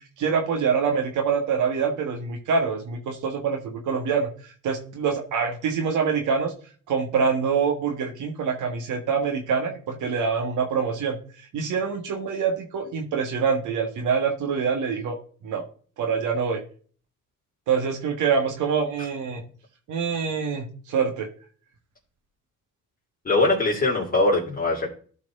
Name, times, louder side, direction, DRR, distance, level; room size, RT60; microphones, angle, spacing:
voice 1, 0.2-6.5 6.9-15.2 15.4-15.6 16.0-16.6 17.7-19.4 19.9-21.3, right 6 dB, 80° right, 3 dB, 1.6 m, -25 dB
voice 2, 23.2-24.9, left 2 dB, 30° left, -5 dB, 2.9 m, -21 dB
12.5 x 4.7 x 3.6 m, 0.43 s
cardioid pair, 90°, 30 cm